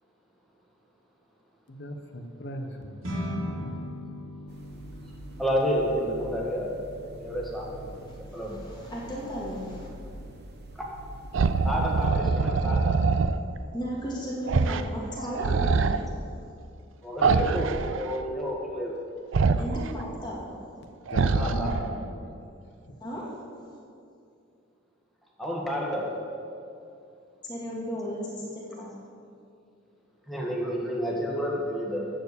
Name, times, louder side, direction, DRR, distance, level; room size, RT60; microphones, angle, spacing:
voice 1, 1.7-3.0 3.4-3.9 21.1-22.4, equal, 55° left, 4 dB, 1.1 m, -37 dB
sound 1, 3.0-12.5, equal, 85° right, 2.6 m, -41 dB
sound 2, 4.5-12.1, right 1 dB, 50° right, 1.0 m, -44 dB
voice 2, 5.4-6.7 7.2-7.9 8.2-8.6 11.6-13.0 17.0-18.9 21.3-21.9 25.4-26.2 30.3-32.1, equal, ahead, -3 dB, 1.7 m, -30 dB
voice 3, 8.4-9.9 13.7-16.0 19.6-20.6 23.0-23.2 27.4-28.9, equal, 20° left, -5 dB, 2.6 m, -35 dB
sound 3, 11.3-13.4 14.5-14.9 15.2-16.0 17.2-18.1 19.3-19.9 21.1-22.0, right 4 dB, 65° right, 0.4 m, -24 dB
14.0 x 4.7 x 8.5 m, 2.5 s
head